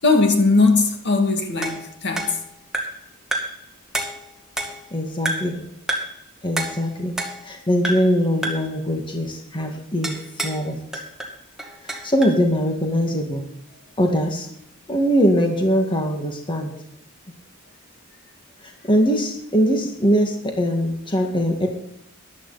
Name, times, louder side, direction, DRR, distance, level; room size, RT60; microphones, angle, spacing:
voice 1, 0.0-2.4, left 3 dB, 55° left, 2.3 m, -19 dB
sound 1, 1.6-3.1 3.3-3.7 3.9-4.9 5.3-5.6 5.9-6.2 6.6-7.6 7.8-8.2 8.4-8.8 10.0-10.6 10.9-12.4, right 1 dB, ahead, 2.1 m, -29 dB
voice 2, 4.9-5.6 6.4-7.1 7.4-10.8 11.8-13.4 14.0-14.5 14.9-16.7 18.9-21.7, equal, 25° left, 2.0 m, -21 dB
14.5 x 11.5 x 4.2 m
head